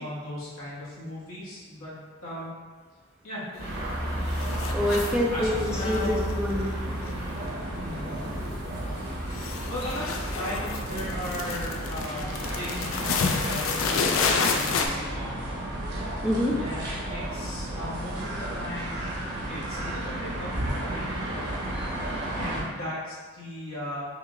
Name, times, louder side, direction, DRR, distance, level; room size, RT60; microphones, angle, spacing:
voice 1, 0.0-1.9 2.2-2.5 3.2-3.5 5.3-6.2 7.8-8.2 8.9-9.0 9.7-12.3 12.6-15.6 16.6-19.0 19.5-21.2 22.3-24.1, left 1 dB, 80° left, -8 dB, 1.5 m, -37 dB
sound 1, 3.6-5.2 5.6-7.8 8.1-8.5 8.8-14.9, left 5 dB, 65° left, 0.4 m, -30 dB
sound 2, 3.6-22.6, right 1 dB, 50° right, 0.9 m, -32 dB
voice 2, 4.7-5.5 5.8-6.7 16.2-16.6, equal, 5° right, -4 dB, 0.4 m, -26 dB
5.7 x 2.3 x 3.0 m, 1.4 s
head